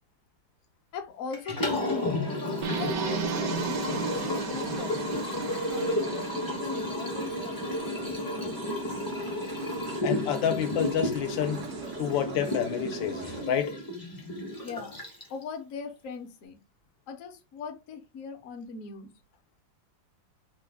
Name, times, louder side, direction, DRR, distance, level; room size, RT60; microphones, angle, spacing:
voice 1, 0.9-5.2 5.7-8.6 14.5-15.0 15.3-16.6 17.1-19.1, left 5 dB, 60° left, 0.8 m, -41 dB
Liquid, 1.3-15.4, left 1 dB, 30° left, 0.3 m, -32 dB
sound 1, 2.5-13.4, right 6 dB, 90° right, 0.6 m, -44 dB
sound 2, 2.6-7.5, right 7 dB, 70° right, 0.9 m, -35 dB
voice 2, 10.0-11.7 12.0-13.8, left 9 dB, 85° left, 1.3 m, -29 dB
3.2 x 2.2 x 3.3 m
omnidirectional pair, 2.0 m